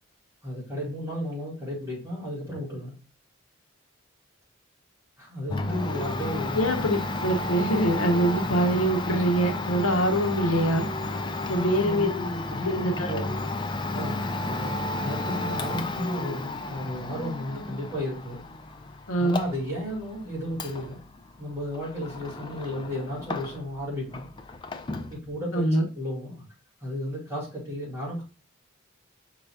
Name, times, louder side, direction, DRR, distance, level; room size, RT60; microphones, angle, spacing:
voice 1, 0.4-2.9 5.2-6.6 11.4-13.6 13.9-18.4 19.2-21.0 21.4-24.3 25.1-26.4 26.8-28.2, equal, 15° right, 2.4 m, -34 dB
Domestic sounds home sounds, 5.5-23.8 24.1-25.2, left 2 dB, 20° left, 0.3 m, -33 dB
voice 2, 6.5-10.9 11.5-12.1 12.6-13.2 19.1-19.4 25.5-25.8, right 1 dB, 80° left, 0.8 m, -24 dB
5.5 x 3.9 x 2.2 m
head